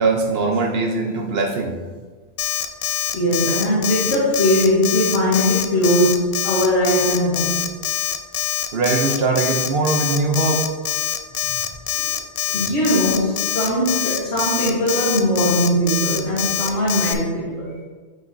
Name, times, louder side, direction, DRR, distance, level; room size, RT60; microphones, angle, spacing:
voice 1, 0.0-1.8 8.7-10.7, right 3 dB, 65° right, 3 dB, 1.0 m, -21 dB
Alarm, 2.4-17.1, left 11 dB, 65° left, 0.7 m, -24 dB
voice 2, 3.1-7.6 11.9-12.1 12.5-17.8, equal, 80° left, -6 dB, 1.5 m, -20 dB
9.2 x 5.0 x 2.7 m, 1.4 s
omnidirectional pair, 1.1 m